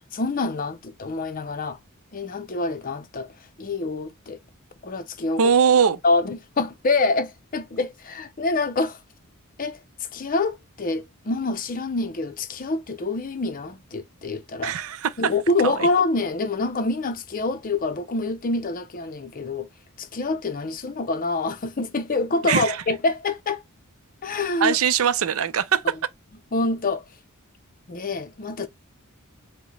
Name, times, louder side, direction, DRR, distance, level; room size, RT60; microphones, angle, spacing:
voice 1, 0.1-1.8 2.1-3.3 3.6-4.4 4.8-5.5 6.0-9.0 9.6-14.7 15.2-19.7 20.0-23.6 24.2-24.8 26.5-27.0 27.9-28.7, left 3 dB, 40° left, 0.6 m, -26 dB
voice 2, 5.4-6.0 14.6-15.3 15.6-15.9 22.4-22.8 24.6-26.0, right 7 dB, 70° right, 0.5 m, -21 dB
4.8 x 2.1 x 4.0 m
head